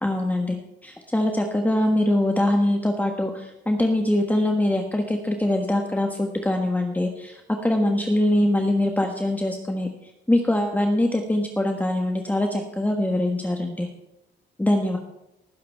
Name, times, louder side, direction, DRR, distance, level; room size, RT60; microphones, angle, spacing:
voice 1, 0.0-0.6 0.8-9.9 10.3-13.9 14.6-15.0, left 1 dB, 10° left, 3 dB, 1.4 m, -23 dB
19.0 x 10.0 x 3.5 m, 0.85 s
cardioid pair, 90°, 20 cm